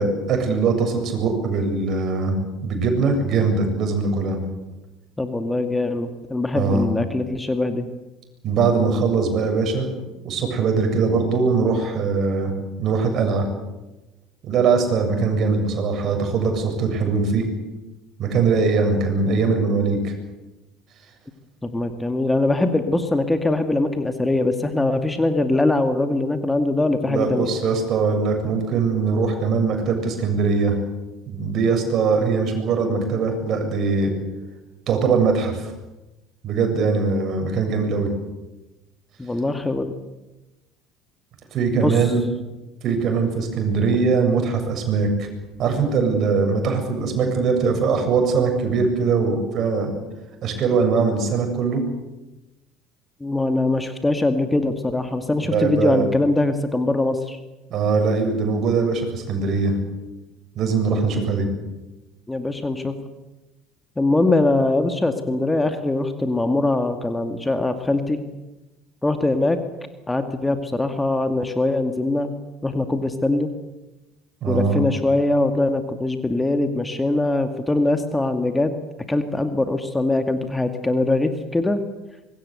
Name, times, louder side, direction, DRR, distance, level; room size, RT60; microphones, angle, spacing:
voice 1, 0.0-4.4 6.5-6.8 8.4-9.9 10.2-12.5 12.8-13.5 14.4-17.4 18.2-20.1 27.0-30.8 31.3-34.1 34.9-35.7 36.4-38.1 41.5-42.2 42.8-45.3 45.6-49.9 50.4-51.8 55.4-56.0 57.7-59.8 60.6-61.5 74.4-74.8, right 4 dB, 50° right, 4 dB, 7.4 m, -21 dB
voice 2, 5.2-7.9 21.6-27.5 39.2-39.9 41.7-42.1 53.2-57.4 62.3-62.9 64.0-68.2 69.0-69.6 70.1-72.3 72.6-73.5 74.5-78.8 79.1-81.8, left 2 dB, 10° left, 7 dB, 2.3 m, -22 dB
25.0 x 22.0 x 8.1 m, 1.0 s
hypercardioid pair, 65°, 0 cm